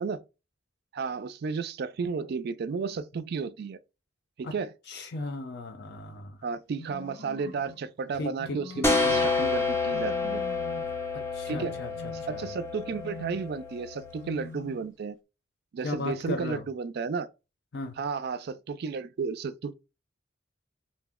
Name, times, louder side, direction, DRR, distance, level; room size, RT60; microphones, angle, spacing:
voice 1, 0.9-3.8 4.4-4.7 6.4-10.4 11.5-11.8 12.3-15.2 15.7-17.3 18.0-19.7, right 5 dB, 55° right, 0.4 m, -33 dB
voice 2, 4.9-6.4 8.1-9.4 11.1-12.5 15.8-16.7 17.7-18.0, left 2 dB, 60° left, 0.6 m, -37 dB
sound 1, 6.7-7.8 8.4-9.4 9.9-11.0 11.5-12.5 12.9-13.6 14.2-14.9, left 2 dB, 90° left, 1.0 m, -44 dB
sound 2, 8.8-14.3, left 3 dB, 15° left, 0.5 m, -29 dB
2.6 x 2.1 x 3.5 m
head